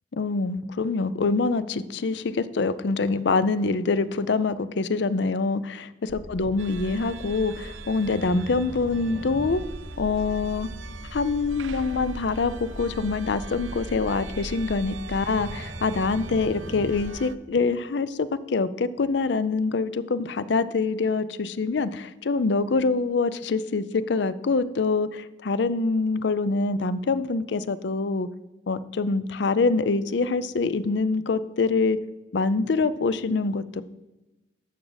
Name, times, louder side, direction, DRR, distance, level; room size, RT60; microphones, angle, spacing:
voice 1, 0.1-9.6 10.0-10.7 11.1-28.3 28.7-32.0 32.3-33.8, left 4 dB, 65° left, 15 dB, 0.5 m, -25 dB
sound 1, 6.1-17.1, right 1 dB, 30° right, 0.9 m, -38 dB
sound 2, 6.6-17.4, right 6 dB, 85° right, 0.5 m, -44 dB
12.0 x 7.3 x 4.0 m, 1.0 s
head